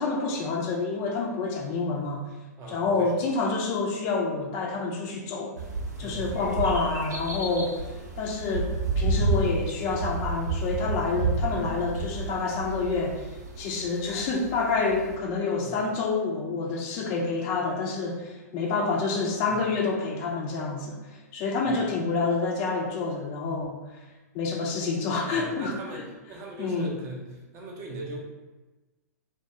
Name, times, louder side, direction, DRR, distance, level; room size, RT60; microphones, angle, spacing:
voice 1, 0.0-2.2 2.7-5.5 6.0-7.8 8.2-13.3 13.6-21.0 21.3-23.8 24.3-26.0 26.6-26.9, left 4 dB, 35° left, -1 dB, 0.4 m, -28 dB
voice 2, 2.6-3.1 6.0-6.4 11.5-11.7 15.6-15.8 19.5-19.6 21.6-21.7 25.3-26.0 26.3-28.2, right 1 dB, 30° right, -2 dB, 0.6 m, -40 dB
sound 1, 5.6-15.2, right 3 dB, 80° right, 0.4 m, -31 dB
2.3 x 2.2 x 2.8 m, 1.2 s
figure-of-eight pair, 110°, 9 cm